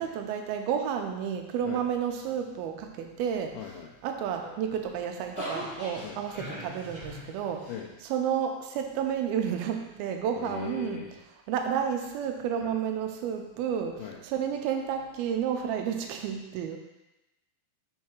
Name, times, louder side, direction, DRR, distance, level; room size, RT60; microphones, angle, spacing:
voice 1, 0.0-3.6 4.0-7.7 8.0-11.0 11.5-16.8, right 8 dB, 80° right, 4 dB, 2.4 m, -31 dB
voice 2, 3.5-3.9 6.0-6.2 7.7-7.9 10.4-11.1 12.6-12.8 14.0-14.2, left 8 dB, 80° left, -3 dB, 2.5 m, -39 dB
sound 1, 4.3-7.7, equal, 30° left, 1.3 m, -40 dB
5.5 x 4.8 x 5.9 m, 0.98 s
omnidirectional pair, 4.5 m